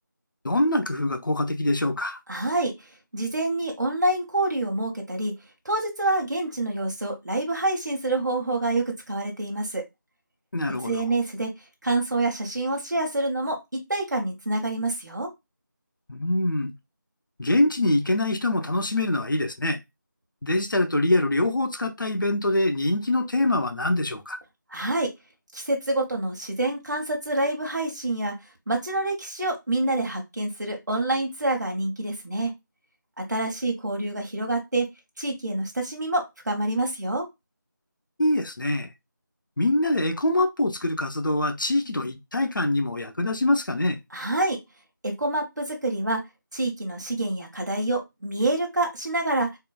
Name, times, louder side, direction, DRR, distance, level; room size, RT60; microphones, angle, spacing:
voice 1, 0.4-2.2 10.5-11.1 16.1-16.7 17.4-19.8 20.4-24.4 38.2-38.9 39.6-44.0, left 1 dB, 75° left, 0.6 m, -24 dB
voice 2, 2.3-2.9 3.1-5.3 5.6-9.8 10.7-11.5 11.8-15.3 24.7-25.1 25.5-28.3 28.7-32.5 33.2-34.9 35.2-37.2 44.1-44.6 45.0-46.2 46.5-49.5, right 2 dB, 60° right, 0.9 m, -27 dB
3.7 x 2.1 x 2.4 m
figure-of-eight pair, 170°, 11 cm